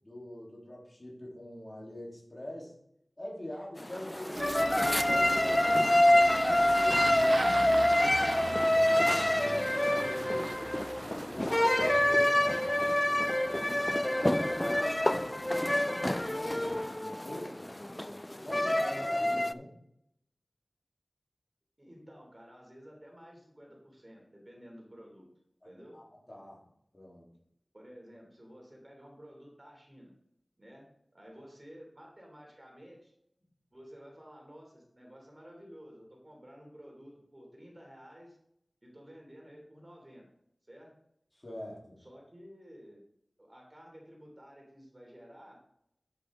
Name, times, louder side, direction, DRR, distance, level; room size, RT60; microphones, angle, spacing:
voice 1, 0.0-2.7 3.2-7.4 7.8-9.1 9.6-12.6 13.0-17.7 18.4-19.7 25.6-26.6 26.9-27.3 41.3-42.0, left 1 dB, 35° left, -4 dB, 3.4 m, -44 dB
sound 1, 3.8-19.5, left 1 dB, 20° left, 0.3 m, -27 dB
Engine starting, 4.3-16.8, right 3 dB, 90° right, 0.4 m, -41 dB
voice 2, 21.8-25.3 25.6-26.0 27.7-30.2 30.6-30.9 31.1-33.1 33.7-38.4 38.8-40.3 40.7-40.9 42.0-43.0 43.4-45.6, equal, 30° right, -1 dB, 3.2 m, -52 dB
8.1 x 7.9 x 3.8 m, 0.75 s
wide cardioid pair, 60°, 0 cm